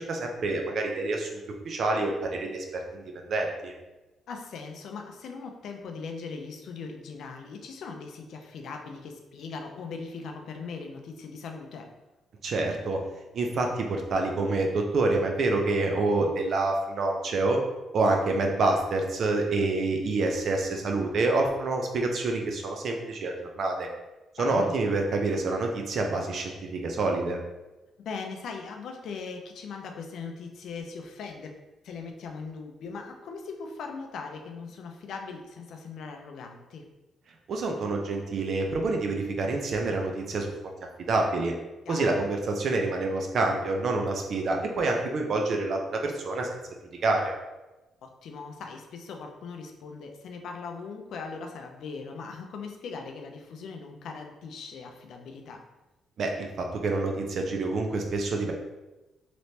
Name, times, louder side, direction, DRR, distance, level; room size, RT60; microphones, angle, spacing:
voice 1, 0.0-3.7 12.4-13.0 13.3-17.6 17.9-23.9 24.4-27.4 37.5-40.5 41.1-41.5 41.9-46.6 47.0-47.3 56.2-58.5, right 2 dB, 60° right, 2 dB, 0.6 m, -27 dB
voice 2, 4.3-11.9 24.4-24.8 28.0-31.6 31.8-36.9 41.9-42.1 48.0-55.6, left 4 dB, 70° left, 3 dB, 0.4 m, -40 dB
3.2 x 3.0 x 2.7 m, 1.1 s
cardioid pair, 90°, 0 cm